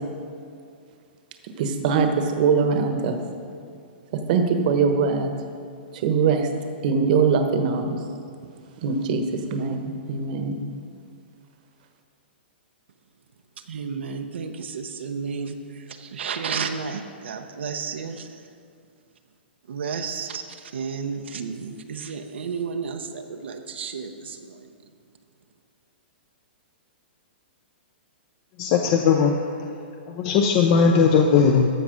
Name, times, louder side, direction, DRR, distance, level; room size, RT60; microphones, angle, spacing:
voice 1, 1.6-3.2 4.3-5.3 5.9-6.5 6.8-8.0 8.8-10.6, right 5 dB, 45° right, 6 dB, 1.1 m, -22 dB
voice 2, 13.7-18.4 19.7-24.7, right 5 dB, 85° right, 5 dB, 0.9 m, -32 dB
voice 3, 28.6-29.4 30.1-31.7, left 6 dB, 35° left, 3 dB, 0.6 m, -18 dB
13.5 x 7.1 x 5.1 m, 2.4 s
hypercardioid pair, 155°, 6 cm